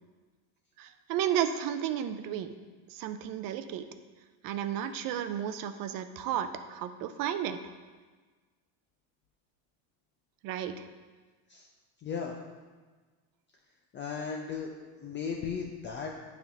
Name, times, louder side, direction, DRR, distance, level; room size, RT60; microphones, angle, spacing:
voice 1, 0.8-2.5 2.9-3.8 4.4-7.6 10.4-10.9, right 10 dB, 50° right, 10 dB, 0.6 m, -33 dB
voice 2, 12.0-12.3 13.9-14.7 15.0-16.1, left 6 dB, 25° left, 0 dB, 0.5 m, -36 dB
8.8 x 3.7 x 5.8 m, 1.4 s
supercardioid pair, 135°, 46 cm